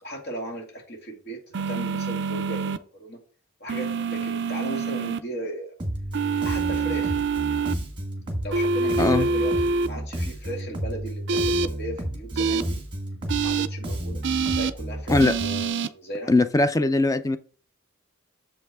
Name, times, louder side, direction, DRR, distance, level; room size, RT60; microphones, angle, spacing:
voice 1, 0.0-3.2 3.6-5.7 6.4-7.2 8.4-12.8 13.4-14.2 14.5-16.3, right 1 dB, 50° left, 2.3 m, -36 dB
sound 1, 1.5-2.8 3.7-5.2 6.1-7.7 8.5-9.9 11.3-11.7 12.4-12.6 13.3-13.7 14.2-14.7 15.2-15.9, right 4 dB, 55° right, 0.4 m, -25 dB
Bass guitar, 5.8-15.7, right 1 dB, 20° right, 1.5 m, -32 dB
voice 2, 16.3-17.4, left 2 dB, 15° left, 0.4 m, -20 dB
7.2 x 5.6 x 3.5 m
head